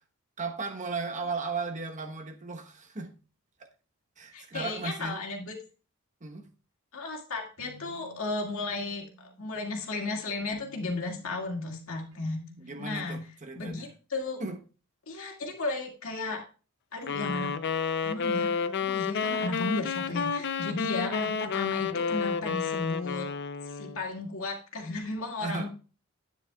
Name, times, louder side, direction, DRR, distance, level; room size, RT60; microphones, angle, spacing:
voice 1, 0.4-3.1 4.2-5.2 6.2-6.4 12.6-13.9 14.4-14.6 19.3-19.5 20.7-20.9 25.4-25.7, right 4 dB, 35° right, 1.1 m, -36 dB
voice 2, 4.3-5.6 6.9-12.4 12.8-13.2 13.5-14.4 15.1-16.4 16.9-17.5 18.0-18.5 18.8-23.3 23.7-25.7, left 3 dB, 75° left, 2.1 m, -34 dB
sound 1, 7.6-13.1, left 1 dB, 80° right, 5.1 m, -54 dB
sound 2, 17.1-24.0, left 6 dB, 55° left, 0.6 m, -30 dB
11.0 x 9.3 x 2.3 m
head